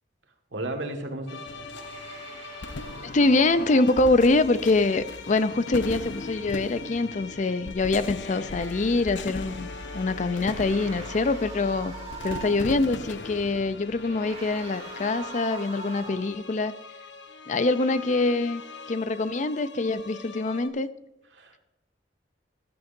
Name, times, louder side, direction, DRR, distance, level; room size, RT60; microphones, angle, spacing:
voice 1, 0.5-1.5 9.9-10.0 21.3-21.6, right 1 dB, 75° right, 3 dB, 1.7 m, -34 dB
sound 1, 1.3-20.7, left 4 dB, 70° left, 1.0 m, -43 dB
sound 2, 1.4-15.0, left 3 dB, 90° left, 0.7 m, -39 dB
sound 3, 1.7-4.5 8.8-8.9 10.2-12.8 14.0-16.4, right 4 dB, 35° right, 2.0 m, -43 dB
voice 2, 3.0-9.7 9.9-11.9 12.2-16.7 17.5-18.6 18.9-20.9, left 3 dB, 40° left, 13 dB, 0.5 m, -24 dB
14.0 x 12.5 x 2.6 m, 0.94 s
head